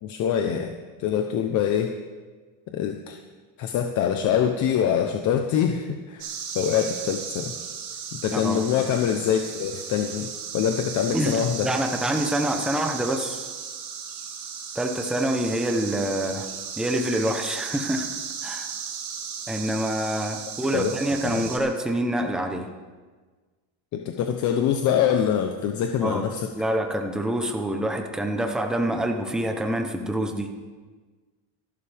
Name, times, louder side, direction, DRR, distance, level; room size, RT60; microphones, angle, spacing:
voice 1, 0.0-0.7 1.0-1.9 2.7-3.2 3.6-6.3 6.5-7.5 8.1-10.3 10.5-11.7 20.7-20.9 21.2-21.4 23.9-26.5, left 8 dB, 45° left, 5 dB, 0.9 m, -24 dB
sound 1, 6.2-21.6, right 7 dB, 70° right, 4.0 m, -35 dB
voice 2, 8.3-8.6 11.1-11.4 11.6-13.5 14.7-16.5 16.8-18.1 18.4-18.7 19.5-22.7 26.0-26.2 26.6-30.5, right 1 dB, ahead, 3 dB, 0.9 m, -26 dB
26.5 x 12.0 x 3.5 m, 1.4 s
cardioid pair, 175°, 42 cm